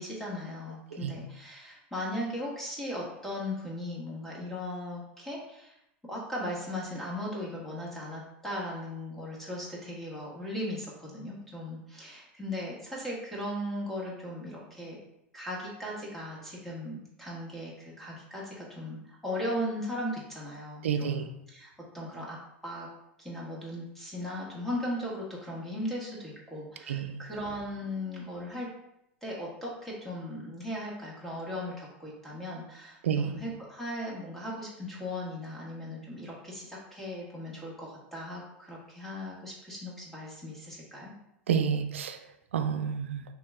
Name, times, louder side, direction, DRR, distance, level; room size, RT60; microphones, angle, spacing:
voice 1, 0.0-5.7 6.0-15.0 15.3-22.4 22.6-22.9 23.2-28.7 29.2-41.1, left 1 dB, 5° left, -5 dB, 1.4 m, -37 dB
voice 2, 20.8-21.2 26.9-27.2 33.0-33.4 41.5-42.2 42.5-43.3, right 7 dB, 90° right, 8 dB, 0.4 m, -29 dB
3.3 x 2.8 x 3.6 m, 0.82 s
hypercardioid pair, 100°, 7 cm